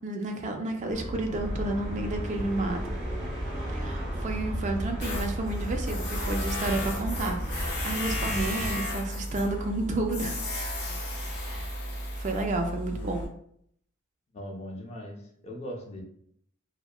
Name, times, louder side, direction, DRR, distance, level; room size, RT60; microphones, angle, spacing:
voice 1, 0.0-2.8 3.7-10.4 11.3-11.6 12.2-13.3, right 2 dB, 35° right, 4 dB, 0.4 m, -31 dB
sound 1, 0.9-7.1 7.4-7.5, equal, 55° right, 0.7 m, -42 dB
sound 2, 1.4-8.7, right 1 dB, 5° right, 1.4 m, -34 dB
Tools, 5.0-13.3, left 1 dB, 50° left, 0.8 m, -33 dB
voice 2, 14.3-16.0, equal, 30° left, 0 dB, 0.5 m, -40 dB
2.7 x 2.2 x 2.3 m, 0.68 s
head